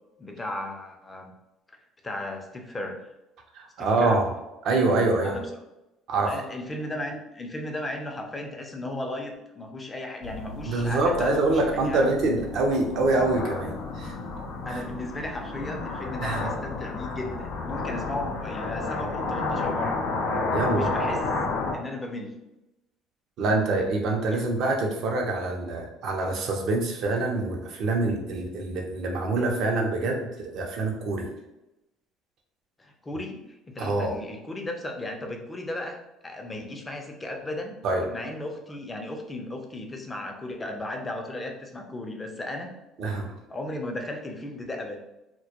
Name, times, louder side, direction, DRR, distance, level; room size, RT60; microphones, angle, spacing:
voice 1, 0.2-1.3 2.0-3.0 3.8-4.2 5.2-5.5 6.3-12.1 14.6-20.0 20.6-21.3 21.7-22.4 24.3-24.4 32.8-33.4 33.7-36.0 36.2-37.7 38.0-42.7 43.5-45.0, left 1 dB, 25° left, 3 dB, 0.5 m, -35 dB
voice 2, 3.5-4.3 4.6-5.4 6.1-6.3 10.6-14.2 14.7-14.8 16.2-16.4 20.5-20.9 23.4-31.3 33.8-34.1 37.8-38.0 43.0-43.3, right 2 dB, 65° right, 1 dB, 0.5 m, -25 dB
sound 1, 10.2-21.8, left 3 dB, 75° left, 0.4 m, -31 dB
2.1 x 2.1 x 2.8 m, 0.94 s
supercardioid pair, 70°, 0 cm